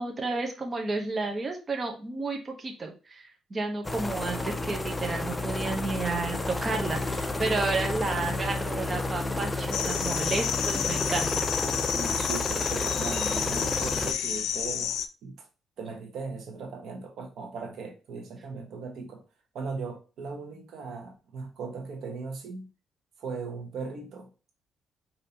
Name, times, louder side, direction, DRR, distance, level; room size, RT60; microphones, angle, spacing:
voice 1, 0.0-11.4, right 3 dB, 30° right, 2 dB, 0.9 m, -31 dB
sound 1, 3.8-14.1, left 2 dB, 15° left, 0.5 m, -31 dB
sound 2, 9.7-15.1, left 9 dB, 80° left, 0.4 m, -30 dB
voice 2, 9.8-10.1 11.9-15.5 15.8-19.2 19.5-22.7 23.2-24.3, right 4 dB, 75° right, 3 dB, 1.1 m, -38 dB
5.2 x 2.8 x 2.8 m, 0.33 s
cardioid pair, 90°, 0 cm